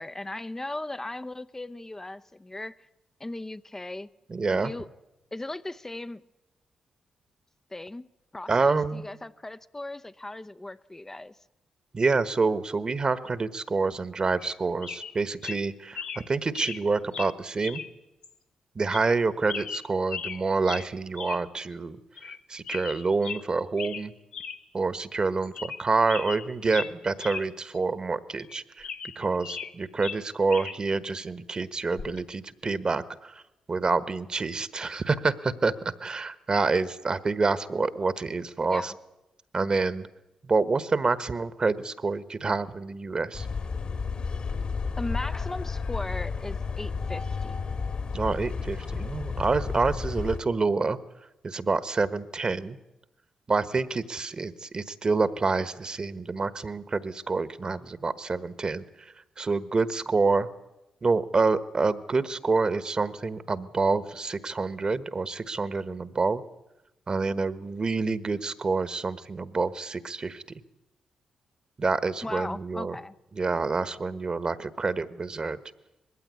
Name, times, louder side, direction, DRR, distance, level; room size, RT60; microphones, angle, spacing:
voice 1, 0.0-2.9 3.2-4.1 4.5-4.9 5.3-6.2 7.7-8.1 8.3-11.4 38.7-39.0 45.0-47.6 72.2-73.1, left 2 dB, 20° left, 0.7 m, -37 dB
voice 2, 4.3-4.7 8.5-9.0 11.9-17.8 18.7-24.1 24.7-28.9 29.1-33.4 33.7-35.7 36.0-38.9 39.5-40.1 40.5-43.5 48.1-51.0 51.4-52.8 53.5-60.5 61.0-66.4 67.1-70.4 71.8-72.9 73.3-75.6, right 4 dB, 40° right, 1.3 m, -27 dB
sound 1, 14.4-14.6 14.8-15.1 15.4-15.6 15.9-16.2 16.5-16.8 17.1-17.3 17.6-17.9 18.2-18.3 18.9-19.2 19.5-20.4 20.6-20.9 21.2-21.4 21.7-21.8 22.2-22.4 22.6-23.4 23.8-24.0 24.3-24.6 25.0-25.1 25.4-25.8 26.1-27.4 27.7-27.8 28.4-29.7 30.0-30.8 32.0-32.2, left 6 dB, 75° left, 1.3 m, -37 dB
sound 2, 43.3-50.4, left 5 dB, 60° left, 2.3 m, -32 dB
20.5 x 16.0 x 9.7 m
supercardioid pair, 45°, 2 cm